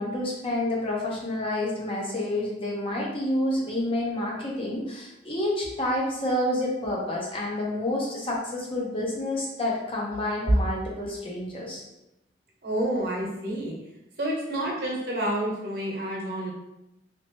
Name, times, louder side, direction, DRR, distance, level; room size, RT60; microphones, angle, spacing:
voice 1, 0.0-11.8, left 1 dB, 30° left, -4 dB, 0.8 m, -29 dB
voice 2, 12.6-13.7 14.2-16.5, right 1 dB, 60° right, -3 dB, 1.0 m, -29 dB
3.1 x 2.9 x 3.0 m, 0.89 s
head